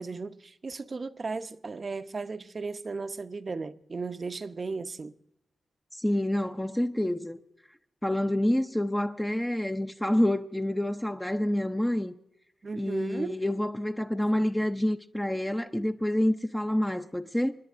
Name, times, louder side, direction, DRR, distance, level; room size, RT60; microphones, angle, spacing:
voice 1, 0.0-5.1 12.6-13.4, right 4 dB, 45° right, 0.7 m, -35 dB
voice 2, 5.9-7.4 8.0-12.1 12.7-17.5, left 1 dB, 5° left, 0.6 m, -28 dB
29.0 x 10.0 x 2.5 m
cardioid pair, 70°, 0 cm